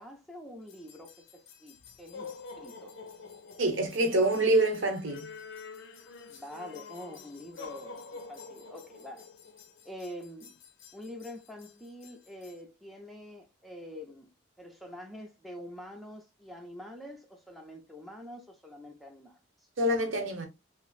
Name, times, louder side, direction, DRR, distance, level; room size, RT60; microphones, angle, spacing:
voice 1, 0.0-3.0 6.3-9.3 9.8-10.5 10.9-14.3 14.6-19.7, left 1 dB, ahead, 0.4 m, -46 dB
sound 1, 0.7-12.6, left 5 dB, 60° left, 0.5 m, -48 dB
voice 2, 3.6-5.3 19.8-20.5, right 1 dB, 70° right, 0.7 m, -26 dB
3.0 x 2.4 x 2.3 m
head